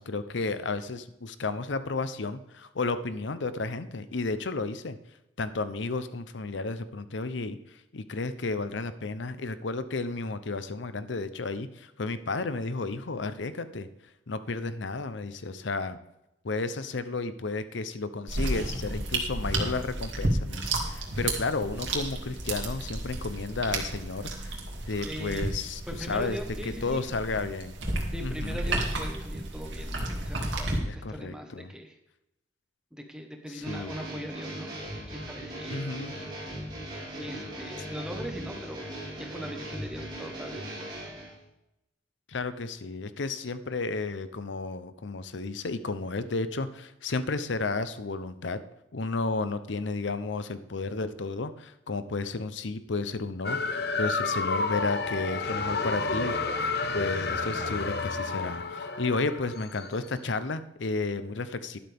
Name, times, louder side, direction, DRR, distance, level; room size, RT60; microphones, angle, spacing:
voice 1, 0.0-5.0 5.4-13.9 14.3-16.0 16.4-24.6 24.9-26.4 26.6-27.7 28.2-28.6 30.8-31.7 33.5-34.0 35.7-36.1 42.3-48.6 48.9-61.8, left 3 dB, 75° left, 13 dB, 0.7 m, -32 dB
sound 1, 18.3-30.8, right 2 dB, 75° right, 2.5 m, -32 dB
voice 2, 25.0-25.6 25.9-27.0 28.1-31.9 32.9-34.7 35.1-35.8 37.1-41.1, equal, 5° right, 3 dB, 1.2 m, -40 dB
sound 2, 33.6-41.4, right 1 dB, 25° right, 4.8 m, -39 dB
sound 3, 53.4-60.0, left 3 dB, 55° left, 1.0 m, -30 dB
12.0 x 11.5 x 3.5 m, 0.87 s
head